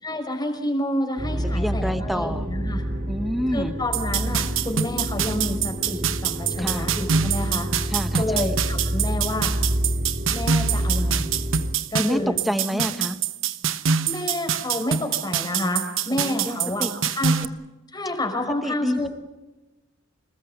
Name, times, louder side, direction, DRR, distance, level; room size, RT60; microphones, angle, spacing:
voice 1, 0.0-2.8 3.5-9.5 10.3-11.3 11.9-12.4 12.7-12.9 14.1-17.4 17.9-19.1, left 1 dB, 20° left, 4 dB, 5.4 m, -29 dB
sound 1, 1.2-11.7, equal, 45° right, 3.5 m, -28 dB
voice 2, 1.4-2.5 3.1-3.7 6.6-6.9 7.9-8.5 11.9-13.2 16.1-16.9 18.6-19.1, equal, ahead, 9 dB, 1.1 m, -28 dB
sound 2, 3.9-17.4, right 7 dB, 65° right, 1.1 m, -25 dB
28.5 x 20.0 x 8.1 m, 1.1 s
head